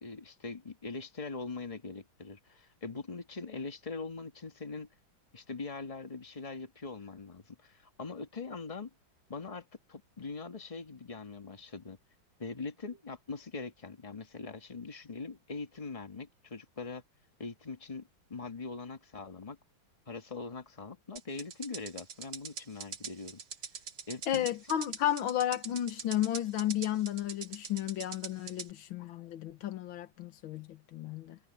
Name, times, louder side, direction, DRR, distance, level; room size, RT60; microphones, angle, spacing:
voice 1, 0.0-4.9 5.3-8.9 9.3-12.0 12.4-17.0 17.4-19.6 20.1-23.4 24.1-24.5, left 4 dB, 20° left, 1.5 m, -42 dB
sound 1, 21.2-28.7, right 6 dB, 55° right, 2.3 m, -43 dB
voice 2, 24.3-31.4, left 11 dB, 75° left, 1.9 m, -33 dB
omnidirectional pair, 2.3 m